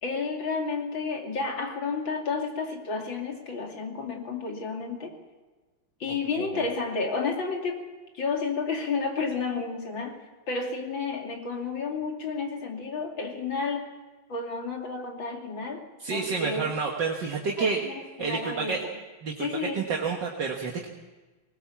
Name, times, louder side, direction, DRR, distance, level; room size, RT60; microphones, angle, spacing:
voice 1, 0.0-5.1 6.0-7.8 8.1-10.2 10.5-13.9 14.3-15.8 16.1-16.7 17.6-18.9 19.4-19.8, left 4 dB, 70° left, 2 dB, 3.4 m, -31 dB
voice 2, 16.0-17.8 18.2-18.9 19.2-20.9, right 5 dB, 65° right, 0 dB, 2.2 m, -29 dB
20.0 x 19.5 x 7.3 m, 1.3 s
omnidirectional pair, 2.2 m